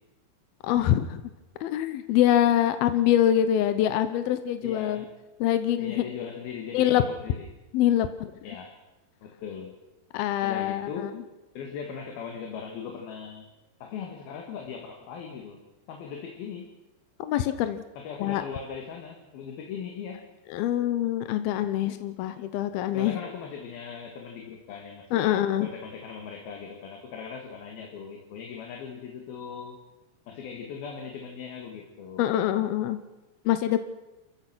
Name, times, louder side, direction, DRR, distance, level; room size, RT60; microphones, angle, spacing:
voice 1, 0.6-1.2 1.6-5.1 5.4-6.0 6.7-7.0 7.7-8.3 10.1-11.1 17.2-17.8 18.2-18.4 20.5-23.2 25.1-25.7 32.2-33.0 33.5-33.8, left 11 dB, 75° left, 10 dB, 2.3 m, -24 dB
voice 2, 4.6-5.1 5.8-7.5 8.4-8.8 9.2-9.8 10.4-11.2 11.5-13.5 13.8-15.6 15.9-16.7 18.0-20.3 22.9-29.8 30.3-32.2, left 6 dB, 60° left, 3 dB, 3.4 m, -39 dB
28.5 x 15.0 x 6.2 m, 1.0 s
omnidirectional pair, 5.3 m